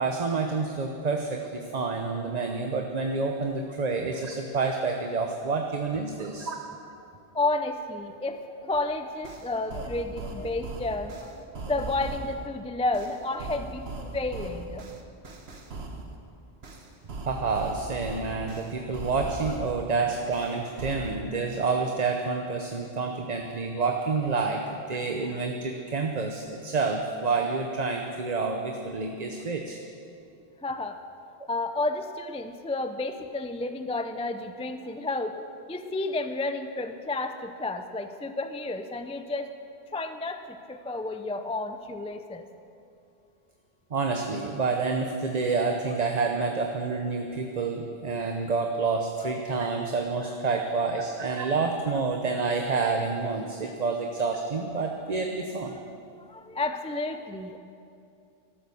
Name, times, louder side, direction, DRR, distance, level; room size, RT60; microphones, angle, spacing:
voice 1, 0.0-6.6 17.3-24.6 24.9-29.8 43.9-55.8, right 4 dB, 40° right, 3 dB, 0.9 m, -28 dB
voice 2, 7.3-14.9 30.6-31.0 31.5-39.5 39.9-42.5 53.6-53.7 55.7-55.8 56.2-57.6, left 2 dB, 10° left, 8 dB, 0.4 m, -31 dB
sound 1, 8.7-8.8 9.2-12.5 12.9-16.2 16.6-19.9 20.3-21.2, right 2 dB, 70° right, 1.4 m, -39 dB
13.5 x 12.0 x 7.0 m, 2.6 s
omnidirectional pair, 1.1 m